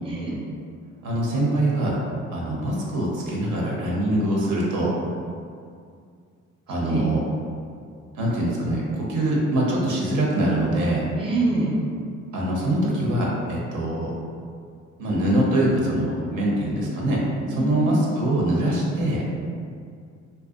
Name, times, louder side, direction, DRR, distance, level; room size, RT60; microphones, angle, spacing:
voice 1, 0.0-0.4 6.8-7.1 11.2-11.7 17.5-17.9, right 2 dB, 20° right, -5 dB, 0.5 m, -26 dB
voice 2, 1.0-2.0 2.3-4.9 6.7-7.2 8.1-11.1 12.3-14.1 15.0-19.2, right 1 dB, 75° right, -4 dB, 0.6 m, -23 dB
2.5 x 2.1 x 2.4 m, 2.2 s
cardioid pair, 90°, 30 cm